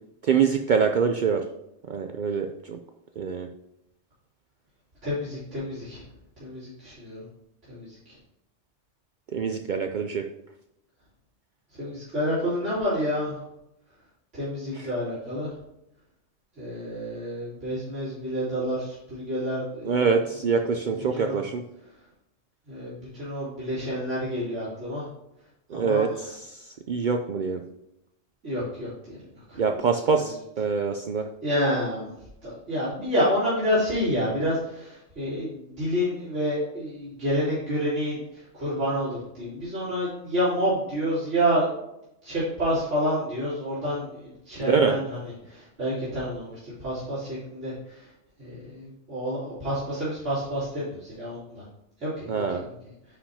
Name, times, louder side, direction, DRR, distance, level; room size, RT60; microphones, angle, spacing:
voice 1, 0.2-1.4 1.9-2.8 3.2-3.5 9.3-10.3 14.8-14.9 19.8-21.6 25.7-27.6 29.6-31.3 44.6-44.9 52.3-52.6, right 5 dB, 60° right, 5 dB, 0.5 m, -25 dB
voice 2, 5.0-6.0 6.4-7.2 7.7-8.0 11.8-13.4 14.3-15.5 16.6-20.0 21.1-21.4 22.7-25.0 25.7-26.2 28.4-29.2 29.5-29.6 31.4-32.1 32.4-41.8 42.2-45.2 45.5-48.1 48.4-51.6 52.0-52.7, equal, 80° right, -12 dB, 3.6 m, -29 dB
9.7 x 5.8 x 2.8 m, 0.83 s
omnidirectional pair, 1.2 m